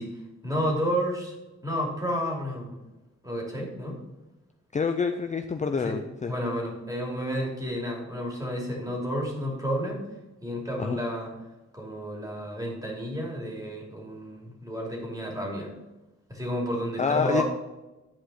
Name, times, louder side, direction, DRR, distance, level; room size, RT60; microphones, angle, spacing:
voice 1, 0.0-1.3 1.6-2.8 3.2-4.0 5.8-6.0 6.3-10.1 10.4-11.3 11.7-15.7 16.3-17.4, equal, 10° right, -2 dB, 2.8 m, -31 dB
voice 2, 4.7-6.3 10.8-11.0 17.0-17.4, left 5 dB, 25° left, 7 dB, 0.4 m, -27 dB
10.5 x 4.9 x 4.2 m, 1.0 s
wide cardioid pair, 105°, 29 cm